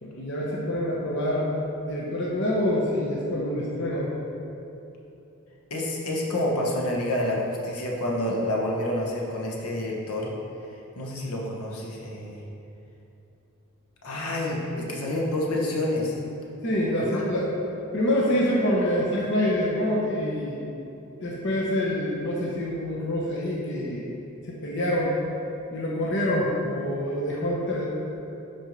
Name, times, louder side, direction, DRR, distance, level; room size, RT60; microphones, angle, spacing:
voice 1, 0.0-1.5 1.9-4.1 14.7-14.9 16.6-17.5 17.9-20.6 21.2-24.1 24.5-25.2 25.7-27.9, left 1 dB, 55° left, -4 dB, 0.9 m, -26 dB
voice 2, 5.7-10.3 10.7-12.4 14.0-16.2 17.0-17.2, left 1 dB, 85° left, -2 dB, 1.1 m, -28 dB
6.2 x 4.4 x 5.3 m, 2.9 s
head